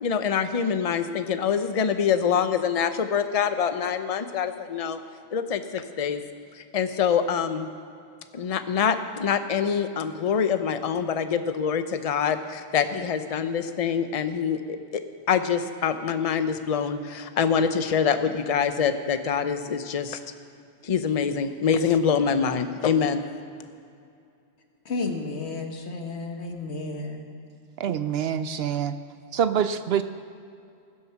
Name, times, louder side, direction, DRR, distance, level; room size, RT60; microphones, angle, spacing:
voice 1, 0.0-5.0 5.3-6.2 6.6-7.7 8.3-15.0 15.3-20.2 20.8-23.2, left 7 dB, 40° left, 0.6 m, -25 dB
voice 2, 24.9-27.3, left 3 dB, 65° left, 1.6 m, -32 dB
voice 3, 27.8-29.0 29.3-30.0, right 8 dB, 65° right, 0.7 m, -25 dB
20.5 x 7.9 x 5.8 m
omnidirectional pair, 1.2 m